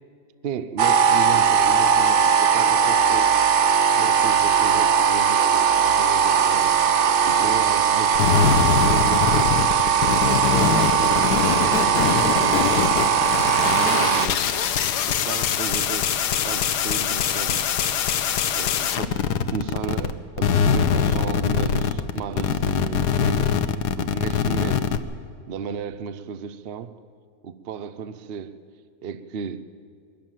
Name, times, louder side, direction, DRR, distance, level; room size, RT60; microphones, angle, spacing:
voice 1, 0.4-3.4 3.9-6.8 7.2-9.6 10.2-12.9 13.6-14.5 15.1-17.6 18.5-23.5 24.0-25.0 25.5-27.0 27.4-28.6 29.0-29.7, right 7 dB, 50° right, 13 dB, 0.8 m, -34 dB
sound 1, 0.8-14.3, right 7 dB, 80° right, 0.4 m, -19 dB
sound 2, 8.2-20.1 20.4-25.0, left 8 dB, 90° left, 1.4 m, -23 dB
22.0 x 14.0 x 9.1 m, 2.2 s
omnidirectional pair, 1.7 m